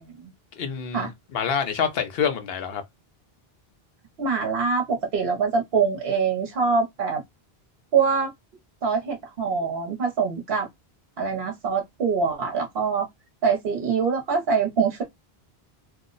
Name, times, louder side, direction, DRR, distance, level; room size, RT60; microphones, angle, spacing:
voice 1, 0.6-2.8, left 7 dB, 75° left, 0.9 m, -27 dB
voice 2, 4.2-7.2 7.9-8.3 8.8-10.7 11.2-13.1 13.4-15.0, right 5 dB, 70° right, 1.0 m, -24 dB
2.7 x 2.1 x 3.8 m
omnidirectional pair, 1.0 m